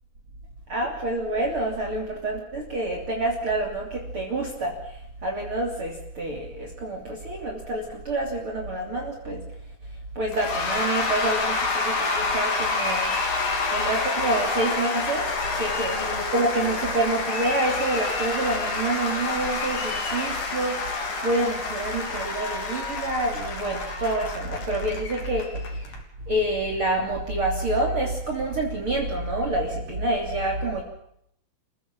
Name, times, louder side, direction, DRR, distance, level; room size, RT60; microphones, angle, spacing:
voice 1, 0.7-4.9 5.2-9.4 10.2-13.1 13.7-15.3 15.6-25.5 26.3-30.8, right 2 dB, 35° right, 1 dB, 3.6 m, -27 dB
Cheering / Applause / Crowd, 10.3-26.0, left 3 dB, 60° left, 4.9 m, -28 dB
29.0 x 16.5 x 7.5 m, 0.73 s
omnidirectional pair, 4.2 m